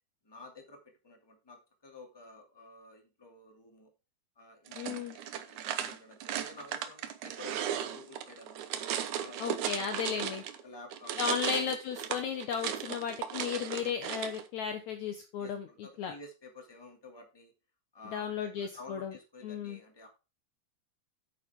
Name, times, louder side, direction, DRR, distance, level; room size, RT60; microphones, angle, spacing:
voice 1, 0.2-3.9 4.3-8.7 9.2-10.1 10.6-11.4 12.8-13.2 15.4-17.5 17.9-20.1, left 2 dB, 10° left, 2 dB, 1.7 m, -52 dB
voice 2, 4.7-5.2 9.4-10.4 11.2-16.1 18.1-19.1 19.4-19.8, left 7 dB, 85° left, 7 dB, 1.6 m, -35 dB
sound 1, 4.7-10.6 10.9-14.4, right 10 dB, 75° right, 1.8 m, -36 dB
9.1 x 9.0 x 3.7 m, 0.30 s
omnidirectional pair, 4.6 m